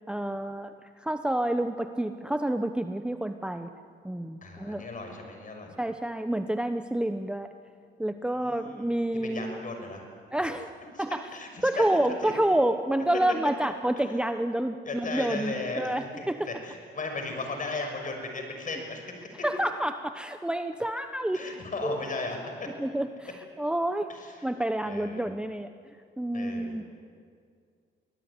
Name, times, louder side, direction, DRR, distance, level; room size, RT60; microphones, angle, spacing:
voice 1, 0.1-0.7 1.0-3.7 4.0-4.8 5.8-7.5 8.0-9.6 10.3-11.2 11.6-16.5 19.4-22.0 22.8-24.1 24.4-25.7 26.2-26.8, right 1 dB, 5° right, 8 dB, 0.9 m, -29 dB
voice 2, 4.4-5.7 8.3-8.9 9.2-10.0 10.9-11.0 11.3-11.8 12.2-12.3 14.0-14.1 14.8-19.0 21.3-22.7 24.1-24.5 24.8-25.2 26.3-26.7, left 3 dB, 40° left, 4 dB, 6.3 m, -36 dB
24.5 x 18.5 x 9.9 m, 2.2 s
cardioid pair, 90°, 20 cm